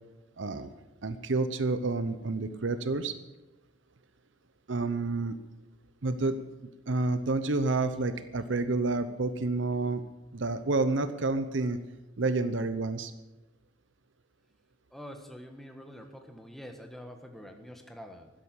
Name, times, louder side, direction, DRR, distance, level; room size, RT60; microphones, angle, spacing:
voice 1, 0.4-0.7 1.0-3.1 4.7-5.4 6.0-6.4 6.9-10.0 10.3-11.8 12.2-13.1, right 3 dB, 70° right, 11 dB, 0.8 m, -29 dB
voice 2, 14.9-18.3, equal, ahead, 4 dB, 1.4 m, -46 dB
12.5 x 10.5 x 8.3 m, 1.0 s
head